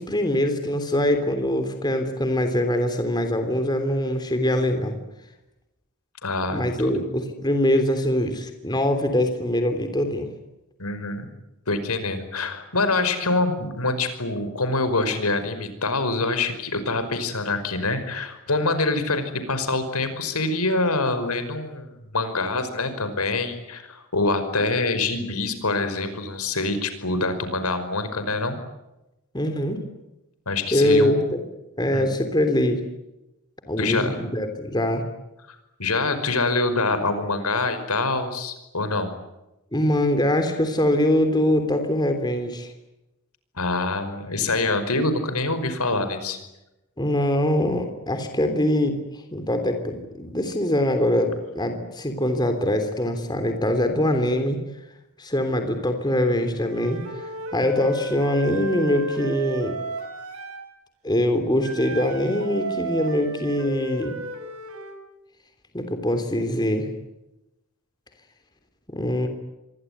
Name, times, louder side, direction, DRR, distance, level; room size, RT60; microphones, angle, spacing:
voice 1, 0.0-5.0 6.5-10.3 29.3-29.8 30.7-31.4 31.8-32.8 33.7-35.0 39.7-42.7 47.0-49.0 49.3-54.6 55.2-59.8 61.0-64.1 65.7-66.9 68.9-69.3, left 1 dB, 20° left, 7 dB, 3.2 m, -23 dB
voice 2, 6.2-7.0 10.8-11.3 11.7-28.6 30.5-31.2 31.9-32.1 33.8-34.2 35.5-39.1 43.6-46.4, left 3 dB, 85° left, 10 dB, 5.4 m, -25 dB
Wind instrument woodwind instrument, 56.6-60.7 61.6-65.0, right 2 dB, 75° right, 5.6 m, -34 dB
27.0 x 23.0 x 9.5 m, 0.94 s
head